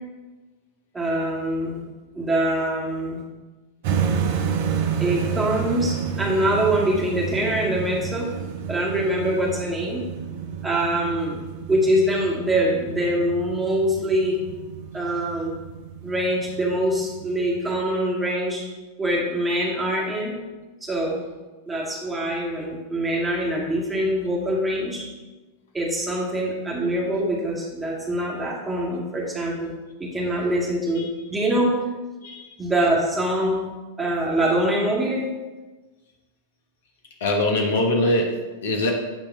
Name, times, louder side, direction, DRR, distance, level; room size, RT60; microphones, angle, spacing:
voice 1, 0.9-1.8 2.1-3.2 5.0-8.3 8.7-10.0 10.6-11.4 11.7-14.4 14.9-15.5 16.0-18.7 19.0-20.3 20.8-21.2 21.7-25.1 25.7-29.7 30.0-31.8 32.6-33.7 34.0-35.3, right 1 dB, 10° right, -3 dB, 2.0 m, -24 dB
sound 1, 3.8-17.8, right 7 dB, 50° right, 0.7 m, -30 dB
voice 2, 37.2-38.9, left 1 dB, 60° left, 1 dB, 1.3 m, -23 dB
9.4 x 3.4 x 5.5 m, 1.2 s
figure-of-eight pair, 90°, 0 cm